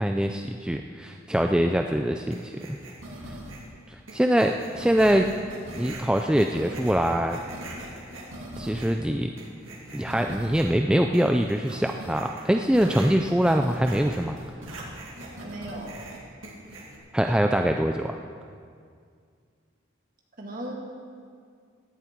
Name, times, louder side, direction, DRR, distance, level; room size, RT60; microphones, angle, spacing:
voice 1, 0.0-2.8 3.3-3.4 3.9-5.3 5.7-7.4 8.6-9.3 9.9-14.4 17.1-18.2, equal, 5° right, 4 dB, 0.3 m, -23 dB
sound 1, 2.3-3.7 4.1-9.0 9.4-10.8 11.1-17.0, right 1 dB, 90° right, 2.3 m, -41 dB
voice 2, 15.4-16.1 20.4-20.7, right 1 dB, 45° right, -1 dB, 2.2 m, -37 dB
16.5 x 11.0 x 4.5 m, 2.2 s
head